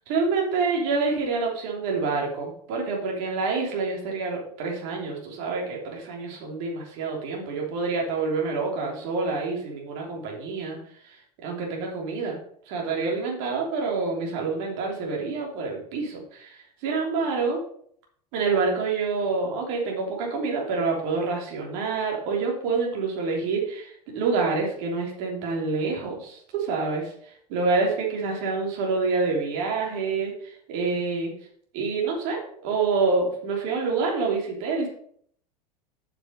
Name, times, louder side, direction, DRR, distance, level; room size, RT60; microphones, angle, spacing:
voice 1, 0.1-10.8 11.0-12.4 12.7-17.6 18.3-27.1 27.5-31.3 31.7-34.9, right 4 dB, 55° right, -1 dB, 3.2 m, -27 dB
7.9 x 6.7 x 5.2 m, 0.63 s
figure-of-eight pair, 85°, 21 cm